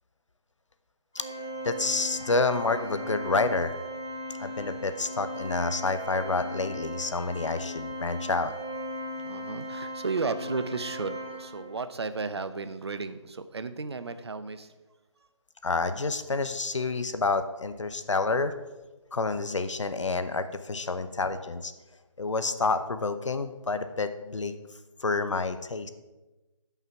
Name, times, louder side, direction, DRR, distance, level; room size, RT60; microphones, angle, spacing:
Organ, 1.1-11.9, equal, 5° left, 0.5 m, -38 dB
voice 1, 1.6-3.7 4.4-8.5 15.6-18.6 19.1-21.7 22.2-24.5 25.0-25.9, left 3 dB, 65° left, 10 dB, 0.8 m, -28 dB
voice 2, 9.1-14.7, right 4 dB, 55° right, 11 dB, 0.7 m, -34 dB
13.0 x 5.7 x 4.6 m, 1.1 s
figure-of-eight pair, 175°, 17 cm